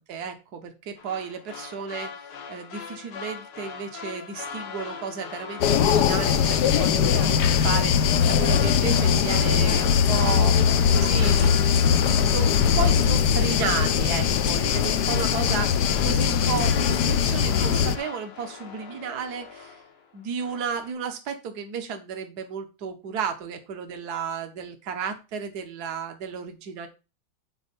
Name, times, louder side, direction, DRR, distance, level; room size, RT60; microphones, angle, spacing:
voice 1, 0.0-2.1 2.5-10.6 10.9-19.8 20.1-26.9, right 6 dB, 50° right, 6 dB, 1.8 m, -33 dB
sound 1, 1.0-20.1 20.4-20.9, left 6 dB, 90° left, 2.4 m, -40 dB
sound 2, 5.6-18.0, left 7 dB, 65° left, 1.2 m, -21 dB
8.8 x 5.2 x 5.3 m, 0.28 s
omnidirectional pair, 2.3 m